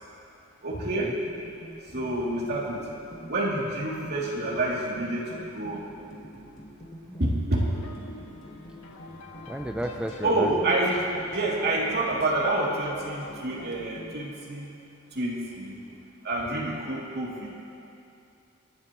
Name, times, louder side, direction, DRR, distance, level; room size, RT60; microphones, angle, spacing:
voice 1, 0.6-1.2 1.9-2.8 3.3-5.8 7.2-7.6 10.2-14.7 15.1-15.8 16.2-17.5, right 2 dB, 50° right, -5 dB, 2.7 m, -28 dB
sound 1, 1.3-14.1, equal, 35° left, 1.9 m, -46 dB
sound 2, 7.5-13.7, left 2 dB, 85° left, 1.6 m, -47 dB
voice 2, 9.5-10.7, right 1 dB, 5° right, 3 dB, 0.4 m, -33 dB
27.0 x 11.5 x 3.1 m, 2.7 s
head